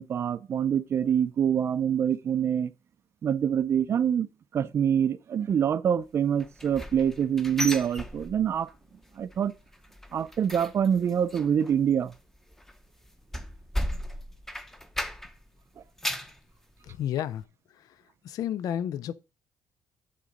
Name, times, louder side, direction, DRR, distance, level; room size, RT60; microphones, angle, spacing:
voice 1, 0.0-2.7 3.2-4.3 4.5-8.7 9.2-9.5 10.1-12.1, right 8 dB, 40° right, 0.5 m, -25 dB
sound 1, 6.4-8.7 9.0-9.4 9.7-15.5 15.8-16.4 16.9-17.0 17.4-17.5, equal, 5° left, 0.7 m, -36 dB
voice 2, 16.8-17.4 17.7-18.0 18.2-19.1, left 10 dB, 60° left, 0.4 m, -31 dB
11.5 x 3.9 x 5.1 m
cardioid pair, 155°, 7 cm